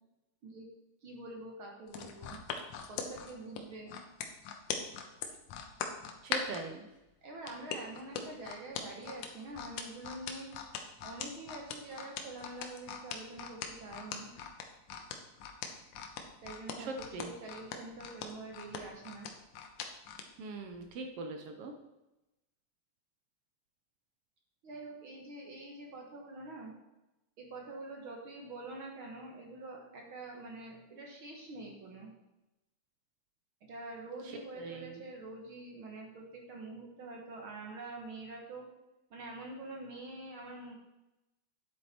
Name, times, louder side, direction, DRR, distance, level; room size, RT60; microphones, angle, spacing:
voice 1, 1.0-2.4 2.9-4.0 7.2-10.5 11.0-14.3 16.4-19.3 24.6-26.7 27.4-32.1 33.6-38.7 39.1-40.8, right 2 dB, 50° right, 0 dB, 1.7 m, -46 dB
sound 1, 1.9-6.6 7.5-20.3 20.7-20.9, left 7 dB, 80° left, 2.4 m, -40 dB
voice 2, 6.2-6.9 16.8-17.3 20.4-21.7 34.6-35.0, right 3 dB, 70° right, 5 dB, 1.4 m, -41 dB
9.8 x 8.1 x 4.3 m, 0.96 s
omnidirectional pair, 3.6 m